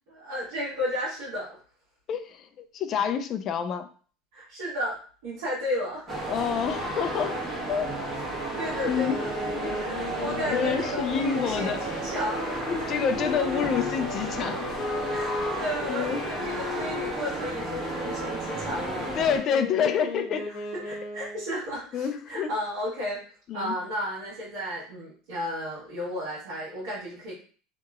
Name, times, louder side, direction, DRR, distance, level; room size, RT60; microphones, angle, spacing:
voice 1, 0.1-1.6 4.3-6.1 8.5-9.3 9.8-12.5 15.1-19.2 20.7-23.2 23.5-27.3, equal, 85° right, -10 dB, 1.4 m, -33 dB
voice 2, 2.1-3.9 6.3-7.9 8.8-9.2 9.5-9.8 10.5-11.8 12.7-14.6 15.9-16.6 19.0-20.5 21.2-21.3 21.9-22.5 23.5-23.7, left 7 dB, 40° left, 9 dB, 0.3 m, -28 dB
sound 1, 6.1-19.4, right 2 dB, 30° right, 1.2 m, -33 dB
Wind instrument woodwind instrument, 9.0-21.5, left 3 dB, 60° left, 0.7 m, -36 dB
2.9 x 2.8 x 2.3 m, 0.42 s
supercardioid pair, 135°, 0 cm